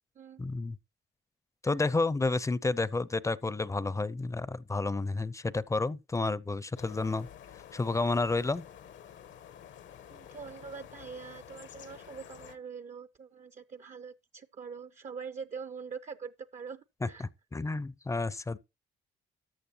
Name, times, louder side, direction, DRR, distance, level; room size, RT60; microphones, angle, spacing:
voice 1, 0.4-0.8 1.6-7.3 7.7-8.6 17.0-18.6, left 3 dB, 15° left, 0.5 m, -30 dB
sound 1, 6.8-12.6, left 9 dB, 75° left, 1.0 m, -50 dB
voice 2, 10.1-17.3, right 6 dB, 40° right, 0.5 m, -44 dB
14.0 x 8.5 x 2.8 m
cardioid pair, 90°, 19 cm